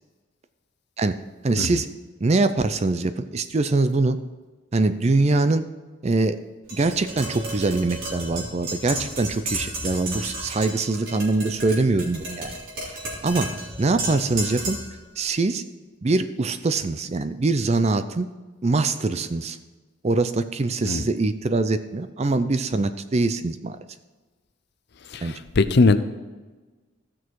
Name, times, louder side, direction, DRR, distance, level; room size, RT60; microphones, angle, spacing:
voice 1, 1.4-1.9 2.2-4.2 4.7-5.6 6.0-6.4 6.7-12.6 13.2-13.5 13.8-14.8 15.2-15.6 16.0-18.3 18.6-19.6 20.0-23.8 25.2-25.4, right 3 dB, 30° right, 11 dB, 0.4 m, -23 dB
Tap, 6.7-15.0, right 1 dB, 65° right, 3.6 m, -33 dB
voice 2, 25.1-26.0, left 3 dB, 50° left, 12 dB, 0.6 m, -20 dB
15.5 x 6.3 x 4.7 m, 1.3 s
head